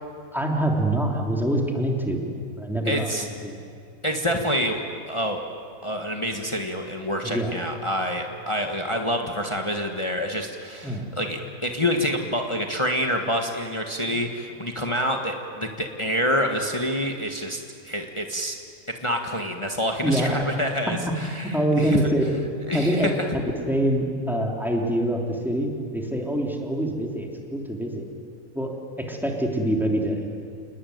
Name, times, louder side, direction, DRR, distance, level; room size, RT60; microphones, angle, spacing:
voice 1, 0.3-2.2 2.6-3.1 3.4-3.6 7.2-7.5 10.8-11.1 14.1-14.2 20.0-20.3 21.1-21.2 21.4-22.2 22.7-23.1 23.7-28.0 28.5-30.2, right 1 dB, ahead, 0 dB, 3.2 m, -25 dB
voice 2, 2.8-3.3 4.0-5.4 5.8-18.6 19.0-22.0 22.7-23.1, equal, 20° left, 3 dB, 1.6 m, -27 dB
28.0 x 20.0 x 9.5 m, 2.3 s
omnidirectional pair, 1.5 m